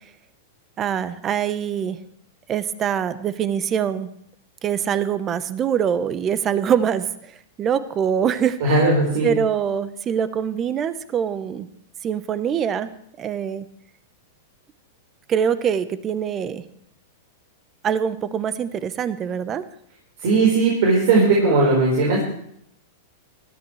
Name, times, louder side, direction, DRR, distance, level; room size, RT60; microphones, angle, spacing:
voice 1, 0.8-2.0 2.5-4.1 4.6-7.3 7.6-8.6 9.2-11.7 12.0-12.9 13.2-13.7 15.3-16.6 17.8-19.6, right 8 dB, 30° right, 13 dB, 0.9 m, -24 dB
voice 2, 8.6-9.3 20.2-22.2, right 3 dB, 65° right, -2 dB, 4.6 m, -17 dB
19.0 x 13.5 x 3.2 m, 0.69 s
hypercardioid pair, 130°, 0 cm